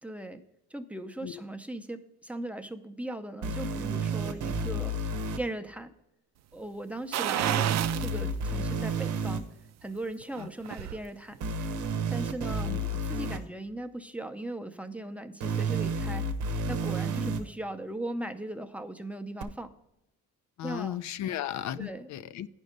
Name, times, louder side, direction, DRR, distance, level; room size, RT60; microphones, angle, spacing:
voice 1, 0.0-0.4 0.7-5.0 5.4-5.9 6.5-9.4 9.8-11.4 12.1-16.3 16.7-19.7 20.6-21.0 21.8-22.1, right 1 dB, 5° right, 6 dB, 0.6 m, -38 dB
sound 1, 3.4-5.4 7.4-9.4 11.4-13.4 15.4-17.4 19.4-19.5, right 3 dB, 80° right, 0.8 m, -30 dB
sound 2, 7.1-8.2 8.6-8.7 10.2-11.0 11.3-11.4, right 12 dB, 60° right, 0.5 m, -30 dB
voice 2, 20.6-22.5, left 11 dB, 70° left, 13 dB, 0.5 m, -35 dB
9.6 x 5.3 x 5.1 m, 0.88 s
cardioid pair, 90°, 30 cm